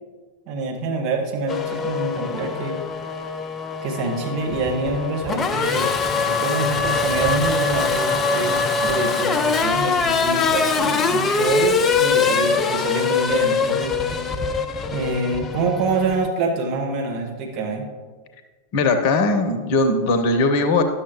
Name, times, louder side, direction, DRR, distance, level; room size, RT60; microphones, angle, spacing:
voice 1, 0.5-2.8 3.8-14.3 14.9-17.9, right 3 dB, 40° right, 1 dB, 1.3 m, -26 dB
Race car auto racing / Accelerating revving vroom, 1.5-16.3, left 5 dB, 20° left, 0.5 m, -23 dB
voice 2, 18.7-20.8, left 3 dB, 45° left, 8 dB, 0.8 m, -19 dB
11.5 x 6.8 x 3.0 m, 1.5 s
figure-of-eight pair, 90°, 0 cm